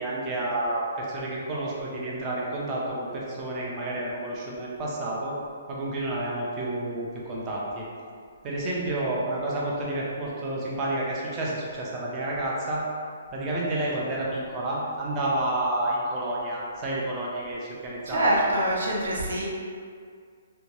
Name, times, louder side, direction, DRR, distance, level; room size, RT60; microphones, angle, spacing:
voice 1, 0.0-5.3 5.7-7.9 8.4-12.8 13.3-18.6, right 1 dB, 20° right, -4 dB, 0.4 m, -30 dB
voice 2, 18.1-19.4, right 1 dB, 85° right, -4 dB, 0.7 m, -25 dB
2.7 x 2.2 x 3.0 m, 2.1 s
hypercardioid pair, 170°, 0 cm